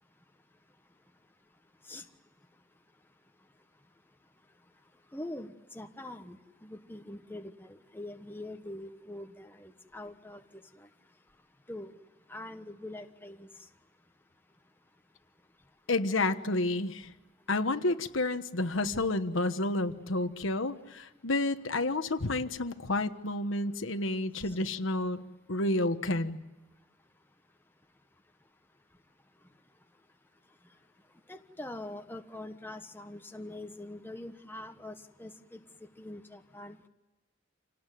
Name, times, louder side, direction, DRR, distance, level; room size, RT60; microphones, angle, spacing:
voice 1, 5.1-10.4 10.8-10.9 11.7-12.0 12.3-13.5 31.3-35.6 36.0-36.8, left 1 dB, 10° left, 6 dB, 1.2 m, -43 dB
voice 2, 15.9-17.1 17.5-25.2 25.5-26.4, left 2 dB, 70° left, 8 dB, 1.3 m, -30 dB
27.5 x 18.5 x 9.3 m, 1.1 s
head